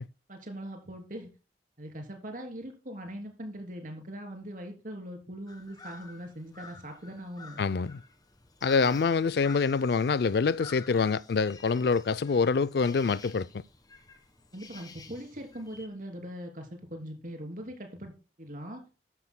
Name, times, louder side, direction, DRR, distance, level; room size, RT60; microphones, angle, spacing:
voice 1, 0.3-1.3 1.8-7.6 14.5-18.8, equal, 50° right, 3.1 m, -41 dB
sound 1, 5.5-15.9, left 4 dB, 20° left, 1.5 m, -51 dB
voice 2, 7.6-8.0 8.6-13.6, left 5 dB, 60° left, 0.4 m, -26 dB
14.0 x 11.0 x 2.2 m
head